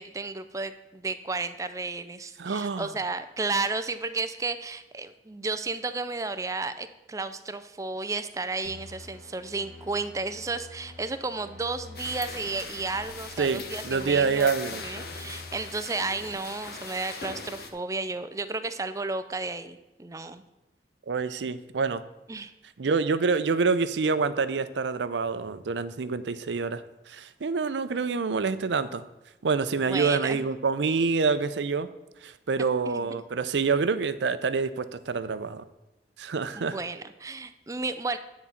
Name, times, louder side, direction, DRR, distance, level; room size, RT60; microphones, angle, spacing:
voice 1, 0.0-14.5 14.8-20.4 22.3-22.5 29.8-30.5 32.9-33.2 36.5-38.2, right 3 dB, 20° right, 10 dB, 0.4 m, -33 dB
voice 2, 2.4-2.9 13.4-14.8 21.1-22.0 22.8-29.0 29.4-31.9 32.2-35.6 36.2-36.8, right 4 dB, 85° right, 13 dB, 0.5 m, -27 dB
sound 1, 8.6-16.3, left 2 dB, 10° left, 1.7 m, -48 dB
sound 2, 12.0-17.7, left 4 dB, 60° left, 0.9 m, -40 dB
9.6 x 4.1 x 7.1 m, 0.96 s
head